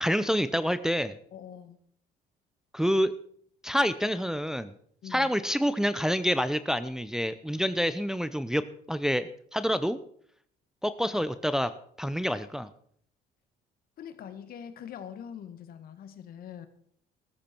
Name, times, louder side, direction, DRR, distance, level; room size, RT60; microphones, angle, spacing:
voice 1, 0.0-1.2 2.7-3.1 3.6-4.7 5.1-8.6 8.9-10.0 10.8-11.7 12.0-12.7, equal, 5° right, 12 dB, 0.6 m, -27 dB
voice 2, 1.3-1.8 5.0-5.3 14.0-16.7, left 8 dB, 60° left, 10 dB, 1.7 m, -43 dB
14.0 x 13.5 x 4.5 m, 0.63 s
cardioid pair, 110°, 17 cm